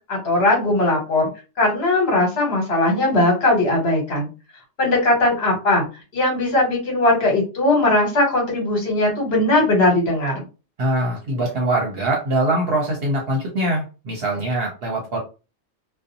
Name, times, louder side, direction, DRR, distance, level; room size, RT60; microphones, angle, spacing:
voice 1, 0.1-1.2 1.6-4.3 4.8-5.9 6.1-10.4, left 2 dB, 55° left, -1 dB, 1.4 m, -19 dB
voice 2, 10.8-15.2, right 1 dB, 60° right, -1 dB, 0.8 m, -23 dB
2.5 x 2.3 x 2.6 m, 0.31 s
omnidirectional pair, 1.3 m